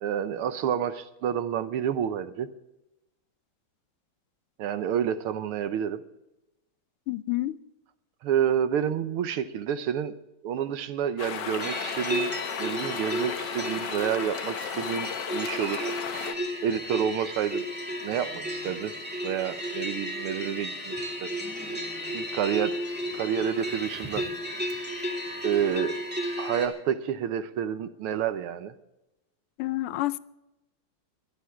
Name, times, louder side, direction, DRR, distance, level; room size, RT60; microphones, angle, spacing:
voice 1, 0.0-2.5 4.6-6.0 8.2-10.2 10.4-12.3 12.6-15.9 16.6-17.7 18.0-18.9 19.2-21.0 21.2-21.3 22.1-22.7 23.1-24.3 25.4-25.9 26.4-28.7, right 9 dB, 80° right, 1.8 m, -29 dB
voice 2, 7.1-7.6 29.6-30.2, left 17 dB, 90° left, 1.6 m, -28 dB
sound 1, 11.2-16.3, left 8 dB, 60° left, 1.4 m, -35 dB
sound 2, 11.6-26.7, equal, 5° right, 2.3 m, -33 dB
21.0 x 11.0 x 3.7 m
omnidirectional pair, 2.4 m